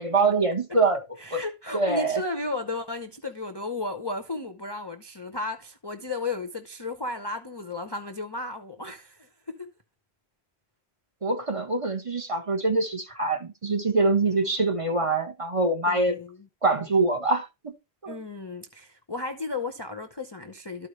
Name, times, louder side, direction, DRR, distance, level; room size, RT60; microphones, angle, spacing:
voice 1, 0.0-1.0 1.3-1.4 1.7-2.2 11.2-16.2 16.6-17.7 18.0-18.2, right 3 dB, 30° right, 1.0 m, -24 dB
voice 2, 1.2-9.7 14.6-14.8 15.9-16.5 18.1-20.9, left 3 dB, 30° left, 0.6 m, -34 dB
12.5 x 4.8 x 3.1 m
omnidirectional pair, 1.1 m